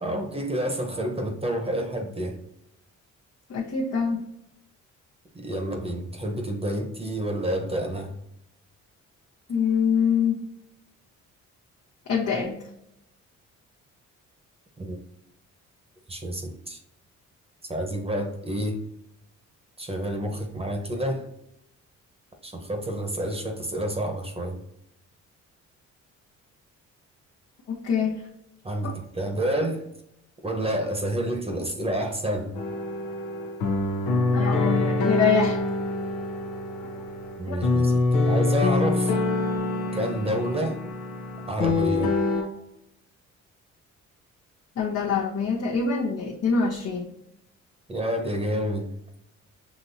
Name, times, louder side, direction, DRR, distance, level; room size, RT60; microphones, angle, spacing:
voice 1, 0.0-2.4 5.3-8.2 14.8-15.0 16.1-16.8 17.7-18.8 19.8-21.3 22.4-24.6 28.6-29.9 30.4-32.6 37.4-39.2 39.9-40.8 41.5-42.1 47.9-48.9, right 1 dB, 20° right, 3 dB, 1.0 m, -29 dB
voice 2, 3.5-4.2 9.5-10.4 12.1-12.6 27.7-28.2 28.8-28.9 34.3-35.6 37.5-37.6 44.8-47.1, left 6 dB, 55° left, -3 dB, 0.9 m, -24 dB
sound 1, 32.5-42.4, left 2 dB, 85° left, 0.9 m, -25 dB
6.1 x 3.0 x 2.7 m, 0.79 s
cardioid pair, 90°, 30 cm